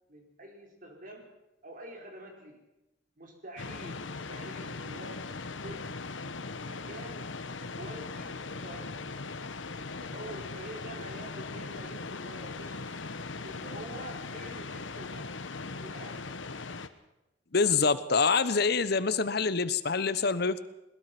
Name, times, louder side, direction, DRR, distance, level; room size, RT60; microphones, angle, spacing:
voice 1, 0.1-1.3 1.6-2.6 3.2-6.1 6.6-9.0 9.8-15.3 15.8-16.4, right 1 dB, 45° right, 2 dB, 4.8 m, -47 dB
sound 1, 3.6-16.9, left 3 dB, 90° left, 1.2 m, -39 dB
voice 2, 17.5-20.7, left 4 dB, 55° left, 14 dB, 1.0 m, -26 dB
21.0 x 20.5 x 6.1 m, 0.95 s
head